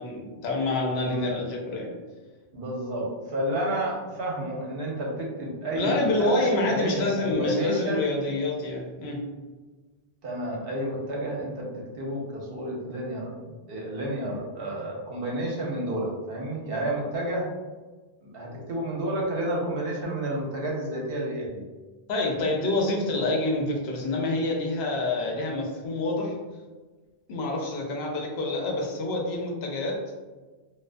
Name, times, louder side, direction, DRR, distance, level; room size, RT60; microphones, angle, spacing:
voice 1, 0.0-1.9 5.7-9.3 22.1-26.4 27.3-30.0, left 2 dB, 80° left, 0 dB, 0.9 m, -27 dB
voice 2, 1.0-1.3 2.5-8.1 10.2-17.5 18.2-21.6, right 1 dB, 70° right, -2 dB, 0.8 m, -30 dB
2.3 x 2.2 x 2.4 m, 1.3 s
omnidirectional pair, 1.1 m